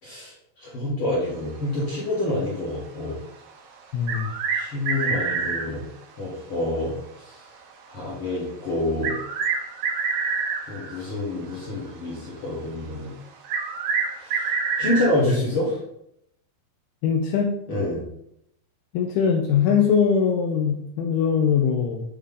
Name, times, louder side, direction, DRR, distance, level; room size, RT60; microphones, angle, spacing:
voice 1, 0.0-3.2 4.5-5.8 6.2-7.4 7.9-9.1 10.7-13.1 14.2-14.5 14.8-15.8 17.7-18.0, left 1 dB, 45° left, -7 dB, 1.9 m, -27 dB
voice 2, 3.9-4.3 17.0-17.5 18.9-22.0, left 7 dB, 85° left, 2 dB, 2.5 m, -21 dB
sound 1, 4.1-5.7 7.5-7.6 9.0-11.0 13.4-15.2, right 5 dB, 90° right, 2.9 m, -26 dB
8.1 x 3.3 x 3.6 m, 0.76 s
omnidirectional pair, 4.5 m